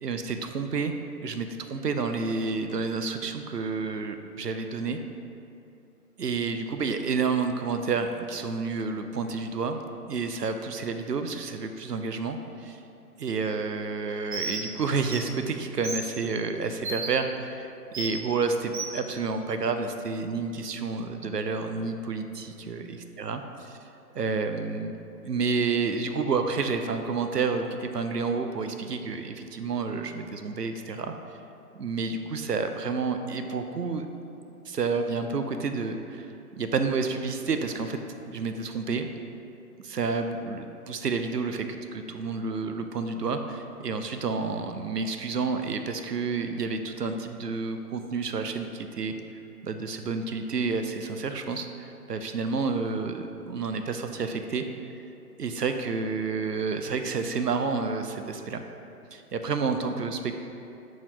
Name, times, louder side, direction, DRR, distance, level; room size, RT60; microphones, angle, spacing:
voice 1, 0.0-0.9 1.2-5.0 6.2-9.8 10.1-12.8 13.2-17.7 17.9-22.8 23.2-23.8 24.1-31.1 31.7-34.1 34.7-38.0 38.3-39.1 39.8-49.2 49.6-54.6 55.4-58.6 59.1-60.3, right 4 dB, 80° right, 7 dB, 0.7 m, -30 dB
Bird, 14.3-14.6 15.0-15.2 15.8-16.0 16.8-17.1 17.9-18.1 18.7-18.9, right 3 dB, 30° right, 1.0 m, -32 dB
4.7 x 4.2 x 5.2 m, 2.6 s
figure-of-eight pair, 140°, 47 cm